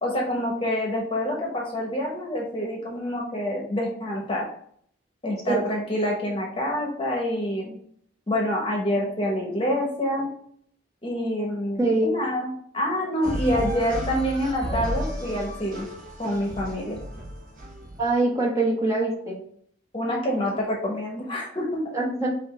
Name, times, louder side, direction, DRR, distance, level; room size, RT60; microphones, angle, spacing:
voice 1, 0.0-4.5 5.2-7.8 8.3-10.3 11.0-15.9 16.2-17.0 19.9-21.8, equal, 25° left, -1 dB, 1.0 m, -27 dB
voice 2, 11.8-12.1 18.0-19.4 21.9-22.3, right 2 dB, 15° right, -4 dB, 1.1 m, -23 dB
sound 1, 13.2-18.1, equal, 45° right, 1.4 m, -33 dB
5.7 x 2.7 x 3.2 m, 0.63 s
head